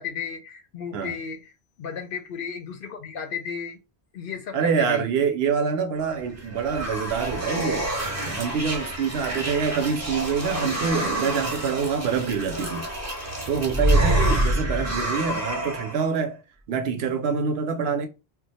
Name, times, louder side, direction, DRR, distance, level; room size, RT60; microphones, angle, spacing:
voice 1, 0.0-1.5 1.8-3.8 4.1-5.0, left 6 dB, 65° left, 0.7 m, -34 dB
voice 2, 4.5-7.9 8.2-12.9 13.5-16.4 16.7-18.1, right 6 dB, 75° right, 0.8 m, -26 dB
sound 1, 6.1-16.1, right 1 dB, 15° right, 0.7 m, -27 dB
2.4 x 2.1 x 4.0 m
omnidirectional pair, 1.1 m